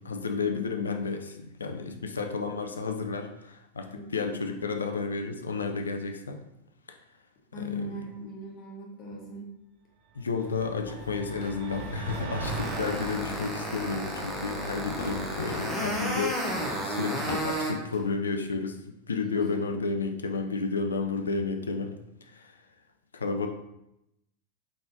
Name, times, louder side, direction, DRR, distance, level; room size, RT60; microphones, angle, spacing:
voice 1, 0.0-6.4 6.9-7.0 7.5-8.0 10.1-22.6 23.1-23.5, left 4 dB, 70° left, 5 dB, 0.4 m, -32 dB
voice 2, 3.9-4.5 7.5-9.5 15.7-15.9 16.4-16.5 19.3-19.6, left 3 dB, 35° left, -2 dB, 1.2 m, -38 dB
sound 1, 10.3-13.2, right 3 dB, 50° right, 0.6 m, -38 dB
Walk footsteps, 10.4-18.1, left 1 dB, 55° left, 0.9 m, -42 dB
sound 2, 12.4-17.7, right 1 dB, ahead, 1.0 m, -32 dB
3.9 x 3.7 x 2.7 m, 0.84 s
figure-of-eight pair, 90°, 0 cm